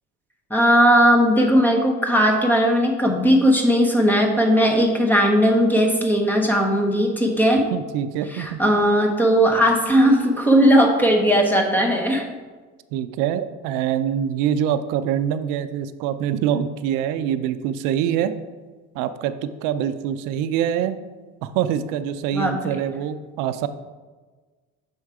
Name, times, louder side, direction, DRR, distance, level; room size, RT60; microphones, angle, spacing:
voice 1, 0.5-7.6 8.3-12.2 22.3-22.6, equal, 5° left, 2 dB, 0.9 m, -17 dB
voice 2, 7.7-8.6 12.9-18.3 18.9-21.0 21.4-23.7, right 9 dB, 85° right, 11 dB, 0.5 m, -24 dB
6.4 x 4.4 x 4.8 m, 1.4 s
cardioid pair, 135°, 31 cm